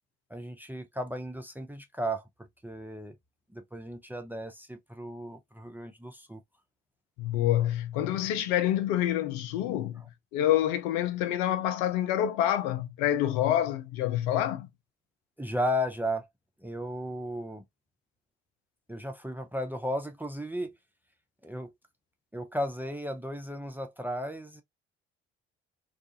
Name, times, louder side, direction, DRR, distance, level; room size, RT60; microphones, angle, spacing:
voice 1, 0.3-2.2 2.6-3.1 3.5-6.4 15.4-16.3 16.6-17.6 18.9-20.7 21.4-21.7 22.3-24.6, equal, 5° right, 0.5 m, -34 dB
voice 2, 7.2-10.0 10.3-14.7, left 12 dB, 70° left, 0.6 m, -27 dB
2.4 x 2.3 x 2.7 m
hypercardioid pair, 50°, 34 cm